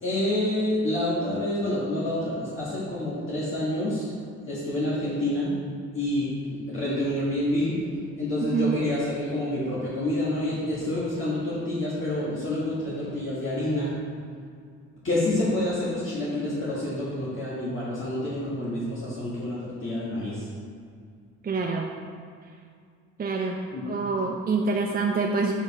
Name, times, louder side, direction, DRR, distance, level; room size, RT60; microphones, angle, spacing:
voice 1, 0.0-4.0 4.5-5.5 5.9-7.8 8.2-13.9 15.0-20.5 23.7-23.8, left 1 dB, 40° left, -9 dB, 1.7 m, -28 dB
voice 2, 21.4-21.8 23.2-23.6 23.8-25.5, right 4 dB, 30° right, 1 dB, 0.6 m, -26 dB
6.6 x 5.1 x 4.2 m, 2.2 s
cardioid pair, 90°, 30 cm